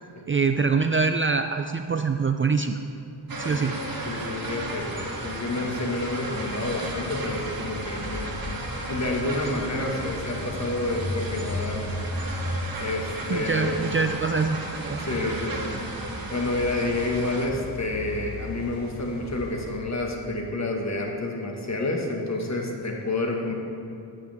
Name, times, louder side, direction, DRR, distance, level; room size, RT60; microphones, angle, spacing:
voice 1, 0.3-2.8 3.4-3.8 13.3-15.0, right 4 dB, 30° right, 7 dB, 0.4 m, -24 dB
sound 1, 3.3-17.5, right 2 dB, 55° right, 1.5 m, -34 dB
voice 2, 3.5-8.6 8.9-12.0 12.8-13.7 14.0-14.1 15.0-15.7 16.3-23.5, left 2 dB, 40° left, 0 dB, 1.8 m, -29 dB
sound 2, 3.9-19.8, left 1 dB, 75° left, 2.1 m, -37 dB
14.0 x 8.3 x 3.6 m, 2.6 s
cardioid pair, 70°, 42 cm